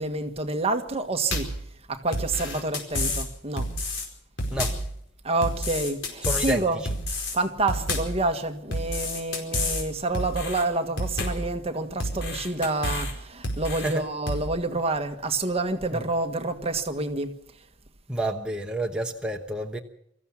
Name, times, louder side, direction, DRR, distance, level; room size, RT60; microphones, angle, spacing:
voice 1, 0.0-1.5 1.9-3.7 5.2-6.8 7.3-17.4, right 2 dB, 30° right, 1.6 m, -28 dB
sound 1, 1.3-1.6 2.1-3.3 3.6-4.1 4.4-4.9 5.4-6.6 6.9-7.4 7.7-8.2 8.7-9.8 10.1-10.6 11.0-11.5 12.0-13.1 13.4-13.9 14.3-14.5, left 1 dB, 80° left, 4.7 m, -29 dB
voice 2, 4.5-4.8 6.2-6.9 13.7-14.1 15.9-16.1 18.1-19.8, right 1 dB, 5° right, 1.1 m, -30 dB
24.5 x 14.5 x 7.2 m
head